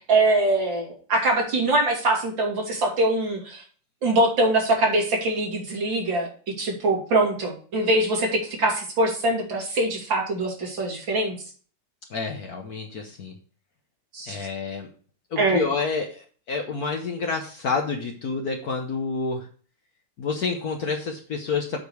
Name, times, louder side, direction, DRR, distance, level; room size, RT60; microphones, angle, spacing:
voice 1, 0.0-3.6 4.0-6.3 6.6-11.4 14.1-14.5 15.4-15.6, right 2 dB, 80° right, -1 dB, 3.5 m, -23 dB
voice 2, 12.1-13.4 14.3-14.9 15.3-19.5 20.2-21.8, left 4 dB, 55° left, 2 dB, 1.5 m, -28 dB
8.2 x 5.1 x 6.3 m, 0.41 s
omnidirectional pair, 2.0 m